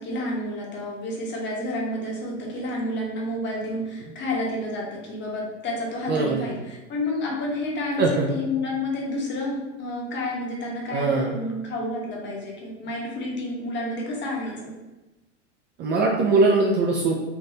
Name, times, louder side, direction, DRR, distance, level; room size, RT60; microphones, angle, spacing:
voice 1, 0.0-14.7, left 1 dB, 30° left, -2 dB, 1.0 m, -30 dB
voice 2, 6.1-6.5 8.0-8.3 10.9-11.4 15.8-17.2, right 3 dB, 30° right, -1 dB, 0.4 m, -21 dB
3.6 x 2.5 x 2.7 m, 1.0 s
hypercardioid pair, 110°, 37 cm